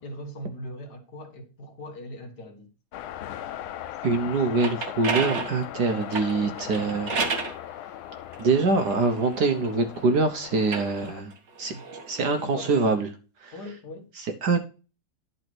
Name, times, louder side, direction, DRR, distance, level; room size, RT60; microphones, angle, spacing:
voice 1, 0.0-2.7 4.2-4.4 6.8-7.0 11.7-11.8 12.4-12.8 13.5-14.1, equal, 55° left, 2.1 m, -40 dB
sound 1, 2.9-11.2, left 12 dB, 85° left, 1.5 m, -39 dB
voice 2, 4.0-7.1 8.4-11.3 11.6-11.7 12.1-13.1 13.4-13.6 14.2-14.6, right 3 dB, 60° right, 1.4 m, -24 dB
sound 2, 4.3-7.6 8.3-10.0 10.5-12.9, right 4 dB, 40° right, 1.4 m, -33 dB
11.0 x 4.1 x 6.1 m
omnidirectional pair, 2.2 m